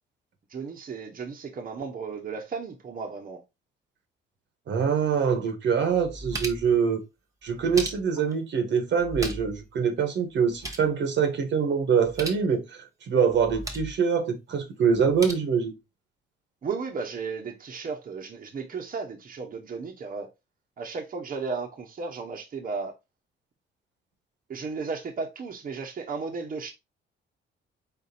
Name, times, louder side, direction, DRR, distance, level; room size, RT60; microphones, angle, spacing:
voice 1, 0.5-3.4 16.6-20.3 20.8-22.9 24.5-26.7, right 4 dB, 45° right, 1.1 m, -34 dB
voice 2, 4.7-7.0 7.4-12.6 13.1-15.7, right 6 dB, 65° right, 1.3 m, -24 dB
sound 1, 5.3-5.4 5.9-6.8 7.5-8.3 9.0-9.6 9.9-10.0 10.3-10.9 12.0-12.4 13.3-14.0 14.9-15.3, right 1 dB, 15° right, 1.2 m, -37 dB
4.2 x 4.2 x 2.8 m
cardioid pair, 90°, 20 cm